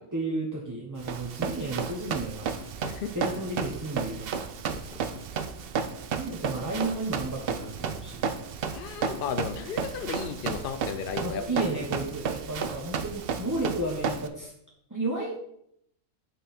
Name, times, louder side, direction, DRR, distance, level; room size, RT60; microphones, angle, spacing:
voice 1, 0.1-2.7 3.1-4.3 6.2-8.2 11.2-14.5 14.9-15.6, right 2 dB, 15° right, -2 dB, 0.9 m, -32 dB
Run, 1.0-14.3, right 6 dB, 65° right, 0.5 m, -33 dB
voice 2, 4.7-5.2 8.7-11.4, left 7 dB, 70° left, 9 dB, 0.5 m, -34 dB
8.7 x 5.6 x 4.3 m, 0.72 s
omnidirectional pair, 1.7 m